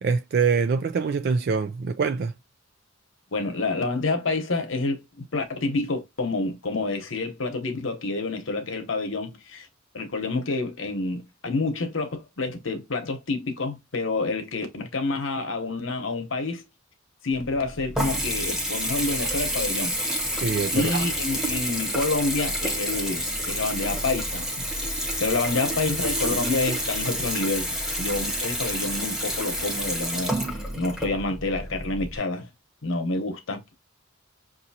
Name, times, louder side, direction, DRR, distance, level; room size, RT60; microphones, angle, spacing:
voice 1, 0.0-2.3 20.4-21.0, right 5 dB, 50° right, 0.3 m, -24 dB
voice 2, 3.3-9.7 9.9-16.6 17.2-19.9 20.7-30.3 30.7-32.5 32.8-33.6, left 3 dB, 65° left, 1.0 m, -28 dB
Water tap faucet / Bathtub (filling or washing) / Trickle dribble, 17.3-32.2, equal, 5° right, 0.9 m, -29 dB
5.8 x 2.7 x 2.8 m
head